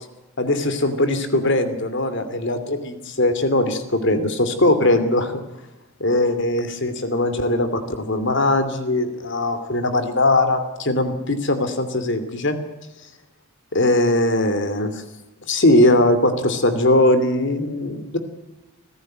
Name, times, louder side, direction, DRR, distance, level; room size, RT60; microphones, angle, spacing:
voice 1, 0.4-5.3 6.0-12.6 13.7-15.0 15.5-18.2, left 1 dB, 55° left, 10 dB, 2.8 m, -20 dB
24.5 x 15.5 x 7.6 m, 1.0 s
head